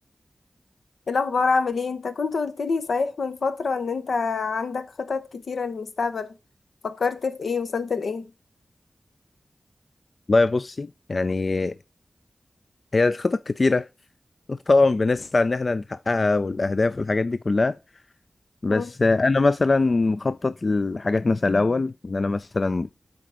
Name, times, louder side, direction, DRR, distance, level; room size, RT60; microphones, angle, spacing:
voice 1, 1.1-6.3 6.8-8.3 18.7-18.9, left 4 dB, 85° left, 0.7 m, -26 dB
voice 2, 10.3-11.8 12.9-13.9 14.5-17.8 18.6-22.9, left 3 dB, 55° left, 0.3 m, -22 dB
7.6 x 4.1 x 4.7 m
cardioid pair, 45°, 0 cm